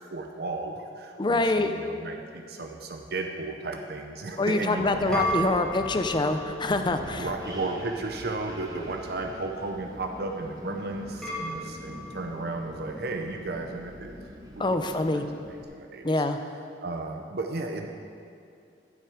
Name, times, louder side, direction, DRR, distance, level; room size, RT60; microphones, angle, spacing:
voice 1, 0.1-5.3 7.2-14.2 14.5-14.9 15.1-15.2 15.7-16.2 16.8-17.9, right 2 dB, 65° right, 3 dB, 0.7 m, -34 dB
voice 2, 1.2-1.7 4.4-7.3 14.6-15.3 16.0-16.4, left 2 dB, 25° left, 8 dB, 0.5 m, -25 dB
Wind, 4.6-15.6, equal, 25° right, 1.2 m, -44 dB
sound 1, 4.8-13.0, equal, 5° left, 1.9 m, -37 dB
12.0 x 7.3 x 5.0 m, 2.4 s
head